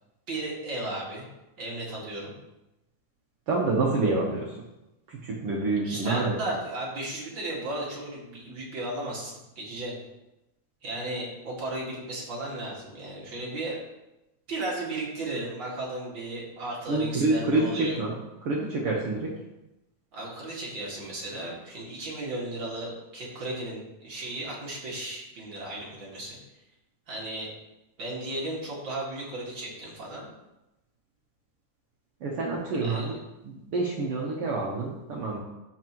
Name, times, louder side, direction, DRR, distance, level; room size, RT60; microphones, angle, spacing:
voice 1, 0.3-1.3 1.6-2.3 5.8-10.0 10.8-13.8 14.5-18.0 20.1-26.4 27.1-27.5 28.0-30.3 32.7-33.2, right 2 dB, 40° right, -5 dB, 2.3 m, -35 dB
voice 2, 3.5-4.4 5.2-6.3 16.9-18.2 18.4-19.3 32.2-33.2 33.4-35.4, right 3 dB, 60° right, -3 dB, 1.5 m, -27 dB
14.0 x 4.8 x 3.0 m, 0.96 s
omnidirectional pair, 3.8 m